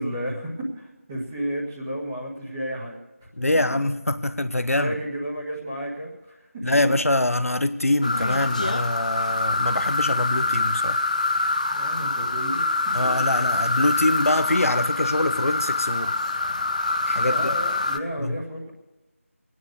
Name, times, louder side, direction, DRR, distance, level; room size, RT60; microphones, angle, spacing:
voice 1, 0.0-3.0 4.7-6.5 11.7-12.9 13.3-13.4 17.2-18.7, equal, 10° right, 1.6 m, -32 dB
voice 2, 3.4-5.0 6.6-11.0 12.9-16.1 17.0-17.5 18.2-18.4, left 1 dB, 80° left, 1.0 m, -24 dB
sound 1, 8.0-18.0, left 2 dB, 30° left, 0.6 m, -25 dB
20.5 x 9.6 x 6.4 m
figure-of-eight pair, 170°, 8 cm